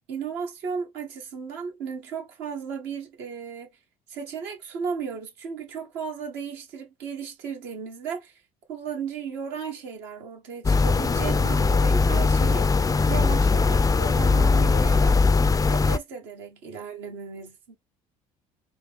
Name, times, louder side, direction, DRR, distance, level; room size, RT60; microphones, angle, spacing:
voice 1, 0.1-3.7 4.1-8.4 8.7-15.2 15.7-17.8, right 6 dB, 70° right, 1.4 m, -35 dB
sound 1, 10.6-16.0, left 4 dB, 20° left, 0.5 m, -20 dB
4.4 x 2.1 x 3.4 m
hypercardioid pair, 55°, 19 cm